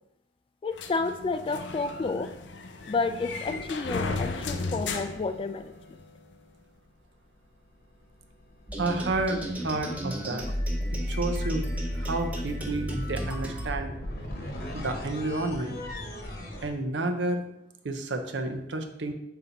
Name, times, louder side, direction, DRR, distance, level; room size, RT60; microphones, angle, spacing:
voice 1, 0.6-2.3 2.9-5.7, left 3 dB, 30° left, 11 dB, 0.3 m, -30 dB
sound 1, 0.8-6.0, left 3 dB, 90° left, 0.5 m, -35 dB
sound 2, 3.5-5.6 7.4-16.7, left 1 dB, 60° left, 1.1 m, -42 dB
sound 3, 8.7-13.7, equal, 10° right, 0.8 m, -32 dB
voice 2, 8.8-10.5 11.1-11.7 11.9-13.9 14.7-15.8 16.6-17.4 17.8-19.1, right 2 dB, 90° right, 6 dB, 0.7 m, -30 dB
5.7 x 4.1 x 3.9 m, 0.81 s
head